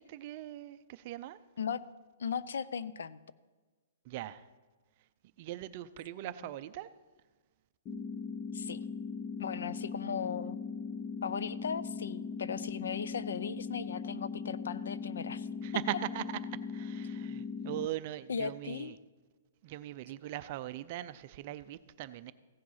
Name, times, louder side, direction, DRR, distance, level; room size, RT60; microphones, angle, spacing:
voice 1, 0.0-1.4 4.0-4.5 5.4-6.9 15.6-16.2 16.7-19.0 19.6-22.3, right 14 dB, 40° right, 12 dB, 0.4 m, -40 dB
voice 2, 2.2-3.2 6.2-6.5 8.5-8.8 9.4-10.6 11.2-15.5 18.3-19.0, left 7 dB, 85° left, 17 dB, 0.5 m, -37 dB
sound 1, 7.9-17.9, left 5 dB, 25° left, 0.6 m, -39 dB
15.5 x 7.6 x 5.6 m, 1.3 s
hypercardioid pair, 160°, 0 cm